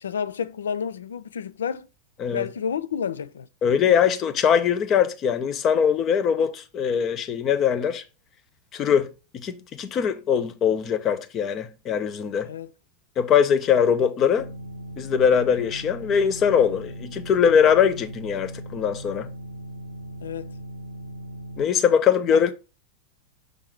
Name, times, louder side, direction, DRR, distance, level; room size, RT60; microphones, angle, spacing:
voice 1, 0.0-1.9 2.3-3.5 12.4-12.7 20.2-20.6 22.3-22.5, left 7 dB, 65° left, 0.4 m, -30 dB
voice 2, 3.6-8.0 8.7-9.1 9.3-12.5 13.2-14.5 15.0-19.3 21.6-22.5, left 7 dB, 30° left, 0.8 m, -21 dB
sound 1, 14.4-21.7, equal, 80° right, 0.7 m, -38 dB
6.5 x 3.5 x 4.7 m
figure-of-eight pair, 90°, 0 cm